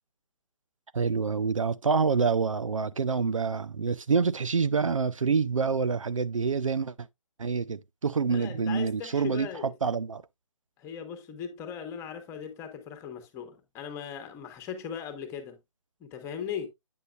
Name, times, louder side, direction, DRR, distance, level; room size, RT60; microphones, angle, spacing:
voice 1, 0.9-6.9 7.4-10.2, right 5 dB, 80° right, 0.5 m, -27 dB
voice 2, 8.3-9.7 10.8-15.6 16.0-16.7, left 8 dB, 15° left, 1.3 m, -38 dB
8.6 x 6.6 x 2.4 m
figure-of-eight pair, 140°, 16 cm